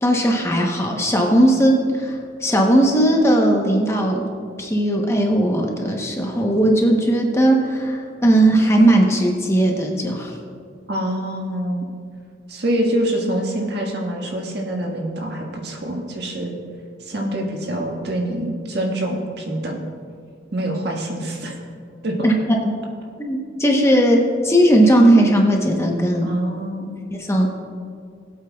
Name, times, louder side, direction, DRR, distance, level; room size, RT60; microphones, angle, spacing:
voice 1, 0.0-4.2 4.6-10.4 22.2-22.7 23.2-26.3 27.1-27.5, right 1 dB, 15° left, 0 dB, 0.9 m, -17 dB
voice 2, 10.9-11.9 12.5-16.5 17.0-19.8 20.5-21.5 22.0-22.2 26.2-26.9, right 1 dB, 60° right, 0 dB, 1.6 m, -25 dB
19.0 x 8.4 x 2.3 m, 2.2 s
head